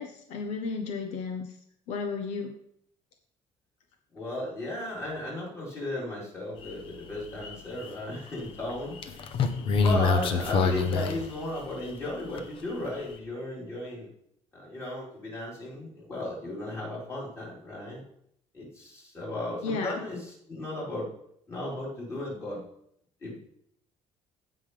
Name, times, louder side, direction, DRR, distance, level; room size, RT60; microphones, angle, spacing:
voice 1, 0.0-1.6 1.9-2.6 19.6-20.0, left 4 dB, 75° left, 4 dB, 1.0 m, -33 dB
voice 2, 4.1-9.0 9.5-14.1 14.5-18.0 18.5-21.1 21.5-22.6 23.2-23.4, left 1 dB, 25° left, -5 dB, 4.2 m, -35 dB
sound 1, 6.6-6.7 7.2-7.9 8.7-11.9 12.4-12.5, left 4 dB, 50° left, 0.9 m, -26 dB
16.0 x 5.7 x 3.3 m, 0.71 s
cardioid pair, 170°, 12 cm